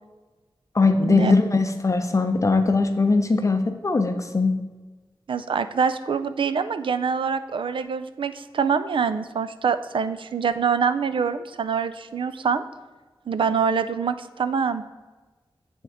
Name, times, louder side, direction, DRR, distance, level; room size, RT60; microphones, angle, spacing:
voice 1, 0.7-4.5, left 3 dB, 35° left, 7 dB, 0.5 m, -20 dB
voice 2, 5.3-12.6 13.3-14.8, right 6 dB, 80° right, 11 dB, 0.4 m, -25 dB
9.4 x 3.6 x 3.5 m, 1.2 s
wide cardioid pair, 70°, 9 cm